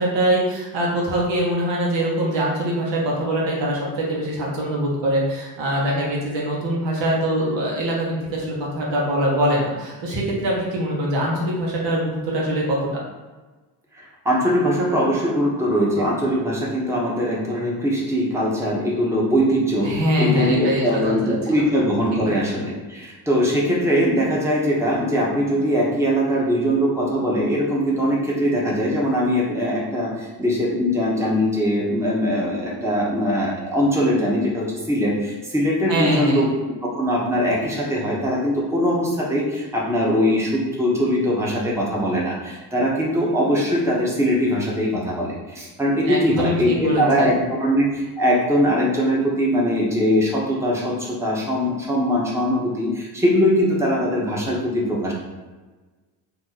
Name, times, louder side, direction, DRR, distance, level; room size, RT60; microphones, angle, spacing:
voice 1, 0.0-12.8 19.8-21.3 22.1-22.3 35.9-36.5 46.0-47.4, right 1 dB, 60° right, -3 dB, 1.0 m, -23 dB
voice 2, 14.0-36.5 36.8-55.1, equal, 5° right, -4 dB, 1.0 m, -21 dB
2.8 x 2.1 x 3.9 m, 1.3 s
hypercardioid pair, 55°, 49 cm